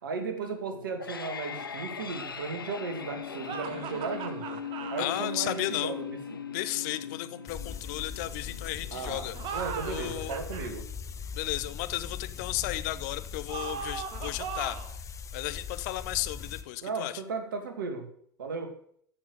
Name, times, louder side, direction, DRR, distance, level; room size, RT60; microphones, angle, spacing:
voice 1, 0.0-4.6 4.9-6.2 8.9-10.8 16.8-18.1 18.4-18.7, right 4 dB, 70° right, 6 dB, 2.3 m, -35 dB
sound 1, 0.7-11.7, left 6 dB, 85° left, 1.0 m, -41 dB
sound 2, 3.4-5.1 9.3-10.7 13.5-15.0, right 7 dB, 45° right, 1.5 m, -38 dB
voice 2, 5.0-5.9 6.5-9.3 9.8-10.4 11.4-14.8 15.3-17.1, left 16 dB, 55° left, 13 dB, 0.9 m, -34 dB
sound 3, 7.5-16.6, left 6 dB, 25° left, 1.2 m, -40 dB
14.5 x 6.7 x 6.6 m, 0.64 s
figure-of-eight pair, 75°, 11 cm